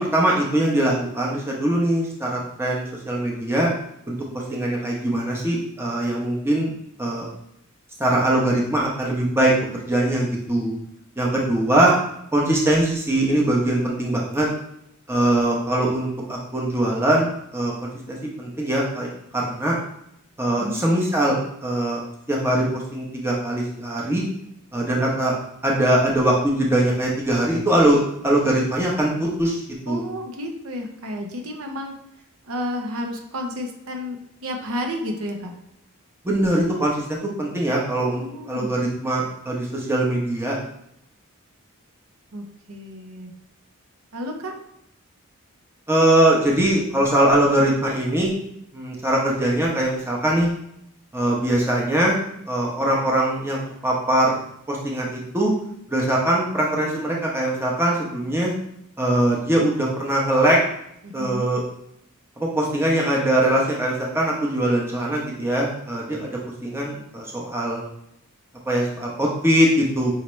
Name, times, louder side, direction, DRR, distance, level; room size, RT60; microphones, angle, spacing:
voice 1, 0.0-3.7 4.1-4.2 4.5-6.7 7.0-7.3 8.0-10.7 11.2-11.9 12.3-14.5 15.1-17.7 18.1-19.1 19.3-19.8 20.4-22.0 22.3-24.2 24.7-25.3 25.6-29.6 29.9-30.0 36.2-40.6 45.9-48.3 48.7-50.5 51.1-52.2 52.5-54.4 54.7-55.5 55.9-58.5 59.0-60.6 61.1-61.6 62.4-66.3 66.6-67.8 68.7-70.1, right 1 dB, 10° right, -3 dB, 0.8 m, -21 dB
voice 2, 20.6-20.9 29.9-31.9 32.4-35.5 38.1-38.7 42.3-43.3 44.1-44.5 61.0-61.5, left 1 dB, 70° right, 3 dB, 0.7 m, -31 dB
5.5 x 2.8 x 3.1 m, 0.77 s
head